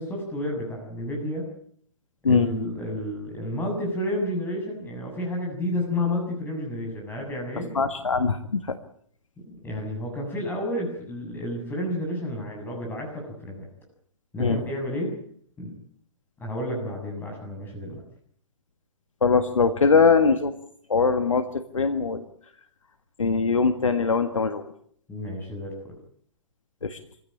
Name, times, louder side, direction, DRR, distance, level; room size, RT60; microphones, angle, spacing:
voice 1, 0.0-1.5 2.2-7.7 9.4-13.7 14.3-15.1 15.6-15.7 16.4-18.0 25.1-25.9, left 1 dB, 10° left, 0 dB, 7.3 m, -31 dB
voice 2, 7.8-8.6 14.4-14.6 19.2-20.5 20.9-21.5 21.7-22.3 23.2-24.7 26.8-27.0, left 4 dB, 80° left, 8 dB, 1.7 m, -21 dB
24.0 x 16.5 x 8.9 m, 0.63 s
figure-of-eight pair, 120°, 16 cm